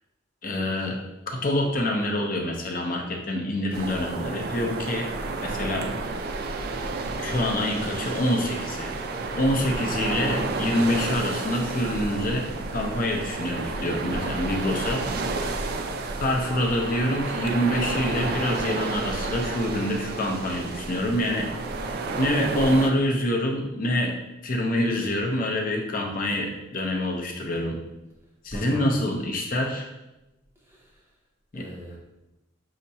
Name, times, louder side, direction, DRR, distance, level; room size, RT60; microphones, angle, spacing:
voice 1, 0.4-1.0 1.3-5.1 5.4-5.9 7.2-8.9 9.4-15.1 16.2-21.5 22.2-24.2 24.4-27.8 28.4-29.9 31.5-31.7, left 1 dB, 45° left, 1 dB, 0.6 m, -26 dB
sound 1, 3.7-22.9, right 3 dB, 50° right, 0.4 m, -31 dB
voice 2, 25.9-26.6 28.5-29.0 30.6-31.1 31.5-32.0, equal, 15° right, -4 dB, 0.7 m, -40 dB
5.4 x 2.9 x 2.7 m, 0.98 s
head